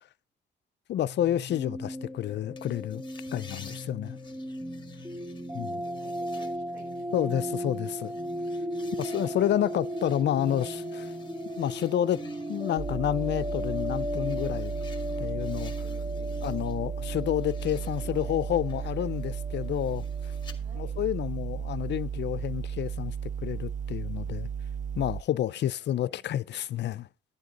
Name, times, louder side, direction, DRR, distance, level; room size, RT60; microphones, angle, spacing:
voice 1, 0.9-3.0 3.3-4.2 5.5-5.8 7.1-8.1 9.0-11.1 11.6-12.2 12.5-14.7 15.2-15.7 16.4-20.0 20.8-23.1 23.4-24.5 25.0-27.1, left 11 dB, 60° left, 0.5 m, -29 dB
sound 1, 1.0-20.5, left 1 dB, 15° right, 2.0 m, -36 dB
sound 2, 2.6-16.8 17.1-20.6, left 5 dB, 25° left, 2.0 m, -54 dB
voice 2, 5.6-7.6 8.8-9.1 15.8-16.7 17.6-19.1 20.6-21.0 25.5-26.3, right 4 dB, 85° right, 5.5 m, -54 dB
sound 3, 12.8-25.2, right 7 dB, 40° right, 0.5 m, -34 dB
12.0 x 8.1 x 3.8 m
cardioid pair, 90°, 20 cm